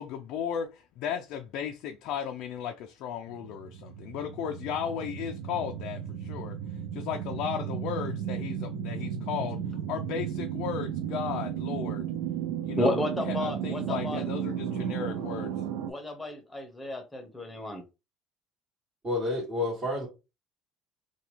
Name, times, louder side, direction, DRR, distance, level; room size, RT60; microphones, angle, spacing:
voice 1, 0.0-6.6 6.9-9.6 9.9-12.1 12.6-13.0 13.3-15.6, left 8 dB, 65° left, 0.4 m, -35 dB
sound 1, 3.3-15.9, right 9 dB, 85° right, 0.4 m, -34 dB
voice 2, 12.8-14.2 15.9-17.8, left 1 dB, 10° left, 0.8 m, -32 dB
voice 3, 19.0-20.1, left 2 dB, 30° right, 1.5 m, -29 dB
2.8 x 2.3 x 3.1 m
cardioid pair, 120°, 0 cm